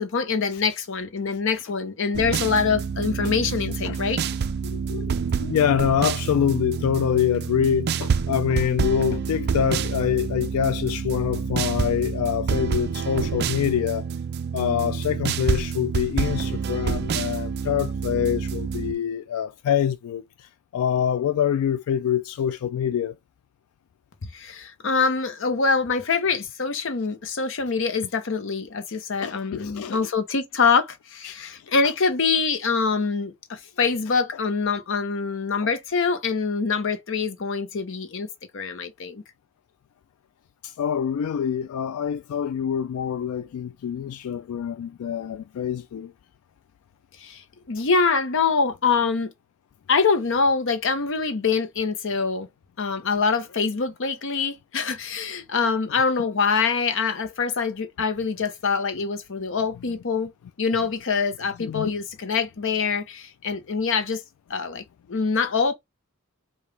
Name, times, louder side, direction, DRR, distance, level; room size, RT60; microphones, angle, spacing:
voice 1, 0.0-4.2 24.3-38.3 38.5-39.2 47.2-47.4 47.7-49.3 49.9-52.5 52.8-60.3 60.6-64.2 64.5-64.8 65.1-65.7, left 5 dB, 60° left, 0.8 m, -24 dB
sound 1, 2.1-18.9, right 6 dB, 50° right, 0.4 m, -27 dB
voice 2, 4.6-5.1 5.4-14.0 14.5-20.2 20.7-23.1 29.2-30.0 31.2-31.3 35.6-35.7 40.6-46.1 61.6-61.9, left 8 dB, 85° left, 0.3 m, -25 dB
5.0 x 2.4 x 3.3 m
head